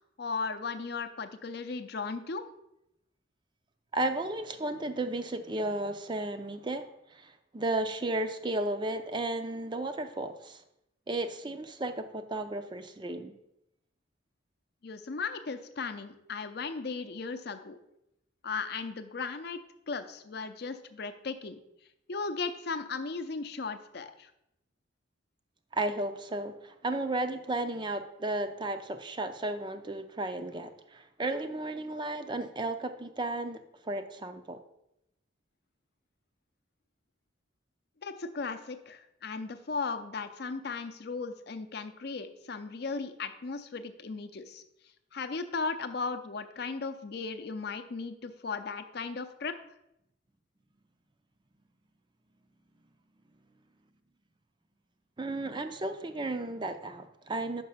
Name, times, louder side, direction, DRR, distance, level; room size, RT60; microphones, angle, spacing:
voice 1, 0.2-2.4 14.8-17.8 18.4-19.6 19.9-21.6 22.1-24.3 38.0-44.6 45.1-49.5, left 4 dB, 55° left, 9 dB, 0.6 m, -36 dB
voice 2, 3.9-10.6 11.1-13.3 25.7-33.6 33.8-34.6 55.2-57.6, right 2 dB, 25° right, 8 dB, 0.4 m, -34 dB
5.8 x 5.4 x 5.5 m, 0.82 s
head